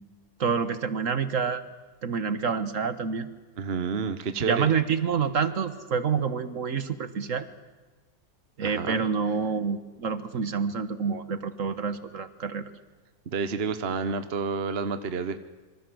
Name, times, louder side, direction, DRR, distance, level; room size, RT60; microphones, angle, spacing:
voice 1, 0.4-1.6 2.0-3.3 4.5-7.5 8.6-12.6, right 6 dB, 60° right, 12 dB, 1.6 m, -27 dB
voice 2, 3.6-4.7 8.6-9.1 13.3-15.4, right 5 dB, 45° right, 11 dB, 1.2 m, -29 dB
26.0 x 24.5 x 7.8 m, 1.3 s
omnidirectional pair, 1.6 m